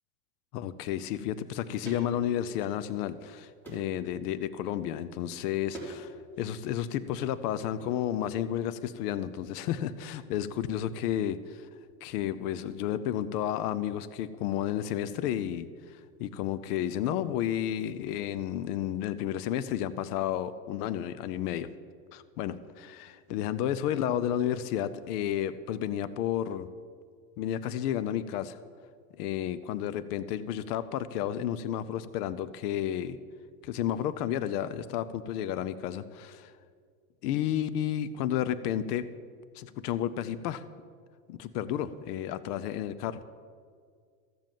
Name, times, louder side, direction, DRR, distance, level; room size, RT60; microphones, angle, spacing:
voice 1, 0.5-11.7 12.0-21.7 22.1-26.7 27.4-28.6 29.2-33.2 33.6-36.5 37.2-39.1 39.5-40.6 41.3-43.2, left 10 dB, 70° left, 15 dB, 0.7 m, -32 dB
sound 1, 1.8-2.1 2.5-3.2 3.6-4.0 5.7-6.0 6.2-6.7 7.8-7.9, right 2 dB, 5° left, 3.5 m, -44 dB
14.0 x 7.5 x 7.4 m, 2.1 s
supercardioid pair, 145°, 48 cm